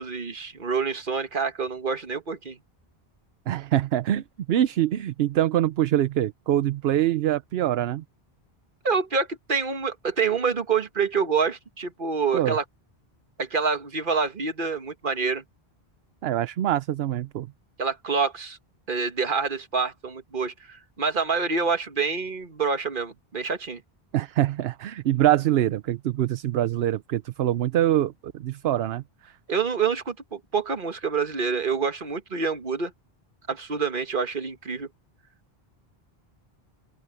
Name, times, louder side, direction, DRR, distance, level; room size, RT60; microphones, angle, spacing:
voice 1, 0.0-2.6 8.8-12.6 13.4-15.4 17.8-18.6 18.9-23.8 29.5-32.9 33.5-34.9, right 5 dB, 55° right, 1.7 m, -27 dB
voice 2, 3.5-8.0 12.3-12.6 16.2-17.5 24.1-29.4, right 12 dB, 75° right, 0.8 m, -24 dB
open air
omnidirectional pair, 1.0 m